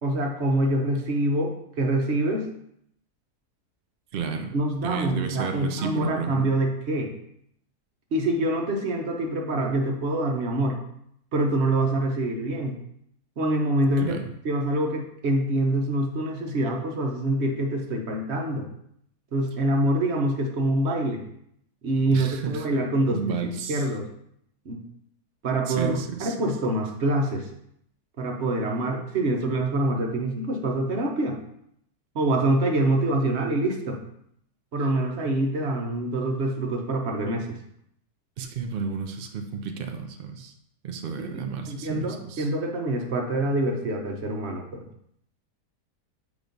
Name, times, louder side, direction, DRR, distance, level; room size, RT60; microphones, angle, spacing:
voice 1, 0.0-2.5 4.5-7.1 8.1-10.8 11.3-12.8 13.4-14.2 14.4-18.7 19.3-21.2 21.8-24.1 24.7-24.8 25.4-27.5 28.2-31.4 32.1-34.0 34.7-37.6 41.2-44.8, right 1 dB, 45° right, 2 dB, 1.1 m, -25 dB
voice 2, 4.1-4.6 4.8-6.5 14.0-14.3 22.1-22.7 23.1-23.9 25.7-26.4 38.4-40.5 40.8-42.5, right 5 dB, 85° right, 5 dB, 0.4 m, -32 dB
8.0 x 3.1 x 5.2 m, 0.73 s
omnidirectional pair, 1.8 m